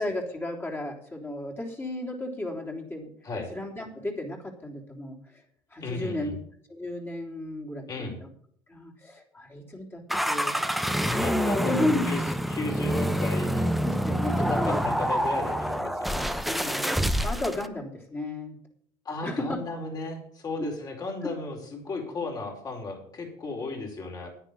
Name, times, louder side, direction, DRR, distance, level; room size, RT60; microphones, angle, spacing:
voice 1, 0.0-3.1 3.5-5.4 5.7-6.4 6.7-8.3 8.7-10.5 11.5-12.1 13.8-14.8 16.4-16.9 17.2-18.6 19.2-19.6 20.6-20.7 21.2-21.3, left 1 dB, 20° left, -1 dB, 3.5 m, -33 dB
voice 2, 5.8-6.3 7.9-8.2 11.1-13.7 14.3-16.3 19.0-24.3, left 3 dB, 35° left, 2 dB, 4.8 m, -35 dB
sound 1, 10.1-17.7, equal, ahead, 0.9 m, -27 dB
10.0 x 9.3 x 7.0 m, 0.62 s
supercardioid pair, 95°, 11 cm